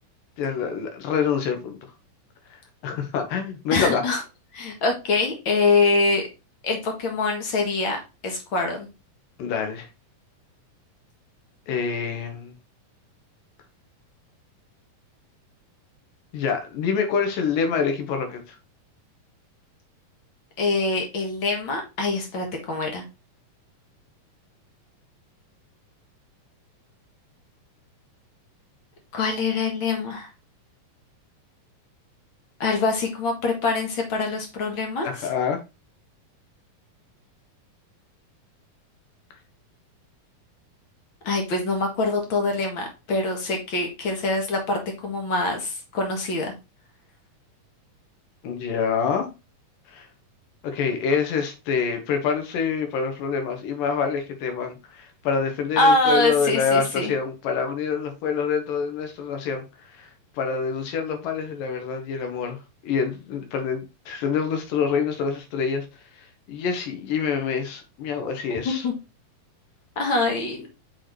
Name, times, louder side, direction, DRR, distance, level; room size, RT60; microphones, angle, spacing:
voice 1, 0.4-1.8 2.5-4.0 9.4-9.9 11.7-12.5 16.3-18.6 35.0-35.6 48.4-49.3 49.9-50.1 50.6-65.9 66.2-68.9, left 6 dB, 80° left, 2.8 m, -26 dB
voice 2, 3.7-4.2 4.5-6.2 6.6-8.9 20.6-23.0 29.1-30.3 32.6-35.3 41.2-46.5 55.8-57.1 68.6-68.9 69.9-70.7, left 3 dB, 50° left, 1.7 m, -24 dB
6.2 x 5.0 x 3.0 m
omnidirectional pair, 3.9 m